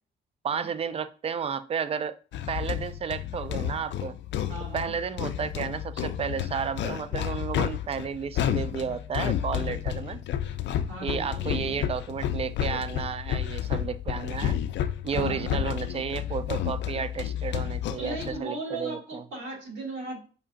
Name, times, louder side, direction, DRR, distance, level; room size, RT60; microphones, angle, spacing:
voice 1, 0.4-2.1 2.5-4.2 4.7-10.2 11.0-14.6 15.0-19.2, right 7 dB, 30° right, 0.4 m, -32 dB
sound 1, 2.3-18.4, left 10 dB, 65° left, 0.5 m, -31 dB
voice 2, 4.5-4.9 10.9-11.8 15.1-15.6 18.0-20.2, right 2 dB, 70° right, 2.4 m, -37 dB
5.6 x 2.4 x 3.7 m
cardioid pair, 90°, 20 cm